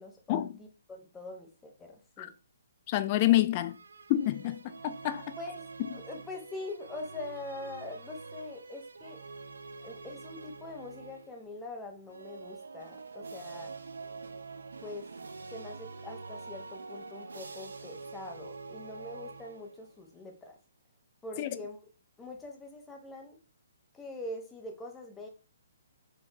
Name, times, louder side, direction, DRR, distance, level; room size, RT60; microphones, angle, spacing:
voice 1, 0.0-2.3 5.4-5.6 5.9-9.2 9.8-13.7 14.8-15.1 15.5-20.5 21.2-21.8 22.2-23.4 23.9-25.3, left 2 dB, 10° left, 1.0 m, -43 dB
voice 2, 2.9-3.8 4.1-5.3 21.4-21.6, left 14 dB, 35° left, 0.4 m, -28 dB
sound 1, 3.6-11.4 12.0-20.0, right 4 dB, 70° right, 0.8 m, -46 dB
4.3 x 3.7 x 3.0 m
figure-of-eight pair, 130°, 0 cm